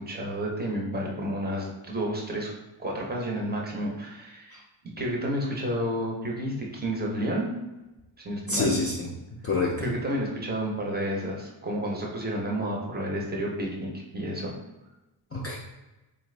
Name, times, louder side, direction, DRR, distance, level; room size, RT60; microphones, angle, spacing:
voice 1, 0.0-2.5 2.8-4.5 5.0-7.5 8.2-8.7 9.8-14.5, equal, 20° right, -2 dB, 0.6 m, -30 dB
voice 2, 8.5-9.1 9.4-9.9 15.3-15.6, left 3 dB, 30° left, -3 dB, 0.4 m, -27 dB
4.2 x 2.5 x 3.2 m, 1.0 s
wide cardioid pair, 170°, 49 cm